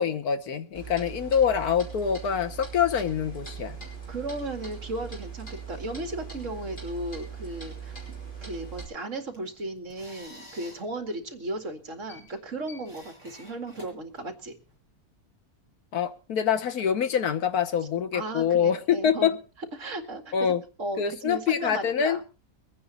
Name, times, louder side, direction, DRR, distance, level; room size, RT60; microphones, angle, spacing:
voice 1, 0.0-3.8 15.9-19.4 20.3-20.6 21.0-22.4, left 8 dB, 85° left, 9 dB, 1.6 m, -25 dB
Clock, 0.7-8.9, right 6 dB, 40° left, 5.6 m, -40 dB
voice 2, 4.1-8.2 8.4-14.5 18.1-19.4 19.7-20.3 20.8-22.4, right 2 dB, 55° right, 5 dB, 2.5 m, -35 dB
sound 1, 9.1-14.8, left 2 dB, 15° left, 8.0 m, -51 dB
23.0 x 9.4 x 4.1 m, 0.34 s
omnidirectional pair, 1.6 m